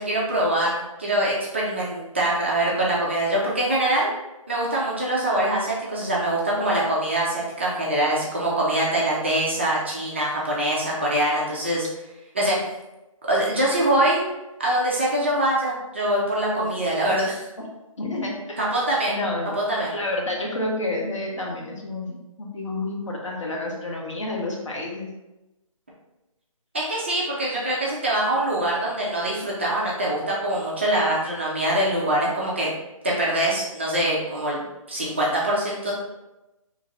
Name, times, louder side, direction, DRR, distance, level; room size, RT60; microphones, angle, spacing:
voice 1, 0.0-4.1 4.5-11.9 12.3-12.6 13.3-14.2 14.6-17.5 18.6-19.2 19.5-19.9 26.7-32.7 33.0-34.6 34.9-35.9, right 1 dB, 20° right, -5 dB, 0.4 m, -23 dB
voice 2, 18.0-18.6 19.1-19.6 19.8-25.1, left 2 dB, 60° left, -1 dB, 0.8 m, -29 dB
2.8 x 2.4 x 2.9 m, 0.98 s
figure-of-eight pair, 155°, 18 cm